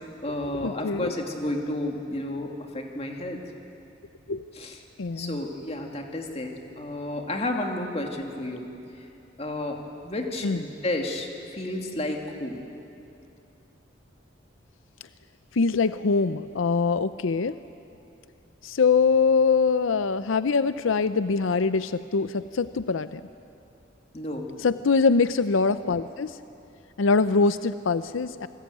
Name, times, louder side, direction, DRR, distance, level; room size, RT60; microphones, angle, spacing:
voice 1, 0.0-3.4 4.5-4.8 5.2-8.7 9.0-9.1 9.4-9.8 10.0-12.6 24.1-24.5, left 1 dB, 30° left, 2 dB, 2.5 m, -31 dB
voice 2, 0.6-1.1 4.3-4.4 5.0-5.4 10.4-10.6 15.6-17.6 18.6-23.2 24.6-26.3 27.0-28.5, left 4 dB, 90° left, 13 dB, 0.6 m, -23 dB
27.5 x 20.0 x 9.2 m, 2.7 s
head